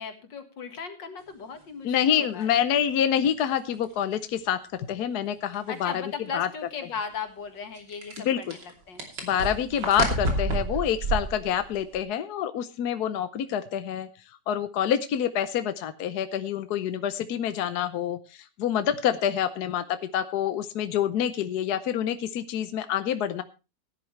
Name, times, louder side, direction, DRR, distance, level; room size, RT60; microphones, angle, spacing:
voice 1, 0.0-2.6 5.7-9.0, left 6 dB, 85° left, 7 dB, 2.6 m, -37 dB
voice 2, 1.8-4.6 4.9-6.0 6.3-6.5 8.2-8.5 9.2-14.1 14.5-19.8 20.1-23.4, left 9 dB, 65° left, 11 dB, 1.3 m, -27 dB
sound 1, 2.4-2.5 3.2-3.3 3.8-3.9 5.5-5.7 7.7-12.0, right 2 dB, 70° right, 3.5 m, -30 dB
16.5 x 10.5 x 3.2 m, 0.30 s
omnidirectional pair, 1.9 m